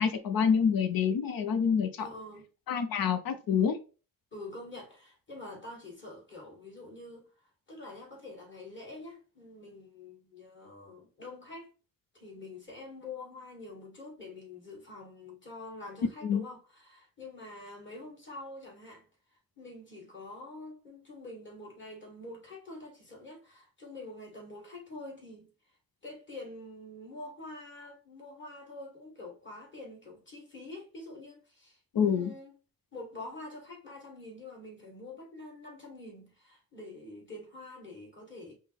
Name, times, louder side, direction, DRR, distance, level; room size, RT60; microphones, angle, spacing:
voice 1, 0.0-2.0 2.7-3.8 16.2-16.4 31.9-32.3, left 7 dB, 75° left, 0.6 m, -27 dB
voice 2, 2.0-2.5 4.3-7.3 7.7-11.7 12.1-25.5 26.0-32.6 32.9-38.5, left 2 dB, 35° left, 2.1 m, -46 dB
5.4 x 2.1 x 3.3 m
wide cardioid pair, 130°, 35 cm